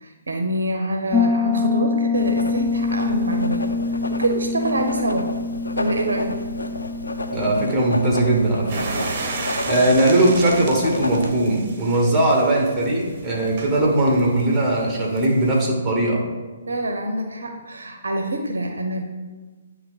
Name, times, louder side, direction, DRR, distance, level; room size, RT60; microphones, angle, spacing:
voice 1, 0.0-3.6 4.2-5.3 5.8-6.4 16.7-19.0, right 1 dB, 70° right, 3 dB, 0.8 m, -25 dB
Piano, 1.1-9.6, left 4 dB, 10° left, 0.4 m, -26 dB
Writing, 2.1-11.6, left 2 dB, 75° left, 0.6 m, -31 dB
voice 2, 7.3-8.9 9.6-16.3, right 1 dB, 15° right, -2 dB, 1.5 m, -19 dB
sound 1, 8.7-15.7, right 3 dB, 40° right, 1.1 m, -34 dB
9.2 x 3.1 x 4.0 m, 1.3 s
figure-of-eight pair, 130°, 0 cm